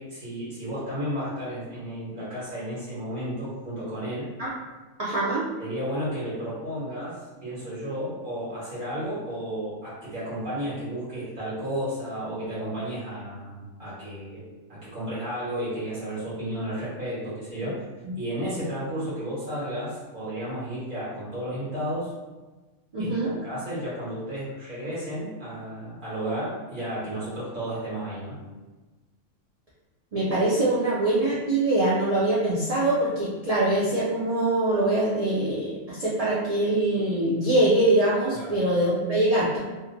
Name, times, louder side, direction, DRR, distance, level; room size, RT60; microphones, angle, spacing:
voice 1, 0.0-4.3 5.6-14.4 14.7-17.7 18.2-22.1 23.0-23.2 23.4-28.3 38.3-38.6, equal, 45° right, -10 dB, 1.2 m, -33 dB
voice 2, 5.0-5.5 18.0-18.1 22.9-23.3 30.1-39.6, right 1 dB, 70° right, -8 dB, 0.3 m, -23 dB
2.6 x 2.1 x 2.5 m, 1.2 s
omnidirectional pair, 1.3 m